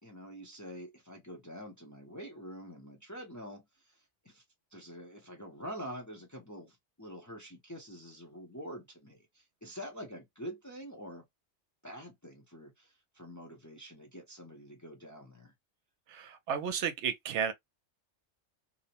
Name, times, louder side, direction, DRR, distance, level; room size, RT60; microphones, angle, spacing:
voice 1, 0.0-4.4 4.7-11.2 11.8-15.5, equal, 20° left, 0.5 m, -46 dB
voice 2, 16.1-17.5, right 7 dB, 75° right, 0.9 m, -33 dB
2.7 x 2.0 x 2.7 m
omnidirectional pair, 1.2 m